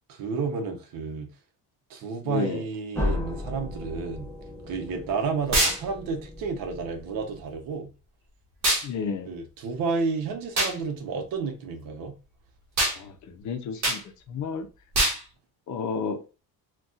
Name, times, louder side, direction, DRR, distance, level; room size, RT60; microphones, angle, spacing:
voice 1, 0.1-1.3 1.9-4.3 4.6-7.9 9.3-12.1, right 4 dB, 65° right, 0.8 m, -31 dB
voice 2, 2.2-2.6 8.8-9.3 13.0-14.0 14.3-14.7 15.7-16.2, left 5 dB, 50° left, 0.6 m, -31 dB
sound 1, 2.9-7.7, left 2 dB, 5° left, 0.5 m, -35 dB
sound 2, 5.5-5.8 8.6-8.9 10.6-10.8 12.8-13.0 13.8-14.0 14.9-15.2, right 1 dB, 45° right, 1.2 m, -23 dB
4.0 x 2.3 x 2.3 m
cardioid pair, 170°, 37 cm